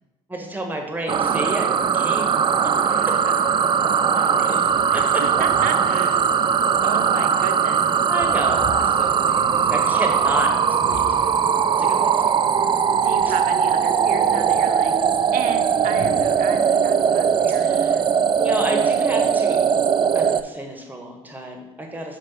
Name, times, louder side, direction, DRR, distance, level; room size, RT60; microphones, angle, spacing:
voice 1, 0.3-2.4 2.6-2.9 3.8-4.6 4.9-5.4 5.7-5.8 8.1-10.5 10.8-11.5 11.8-12.3 17.5-17.9 18.4-19.6 20.1-22.2, right 1 dB, 10° right, 3 dB, 1.4 m, -31 dB
sound 1, 1.1-20.4, right 7 dB, 30° right, 0.4 m, -20 dB
voice 2, 2.9-3.6 4.2-4.4 4.9-6.3 6.8-7.9 13.0-15.0 15.3-18.1, right 7 dB, 65° right, 7 dB, 0.7 m, -33 dB
sound 2, 3.5-4.0 4.3-19.3, equal, 45° left, 1.9 m, -42 dB
5.3 x 3.9 x 5.6 m, 1.1 s
hypercardioid pair, 60°, 16 cm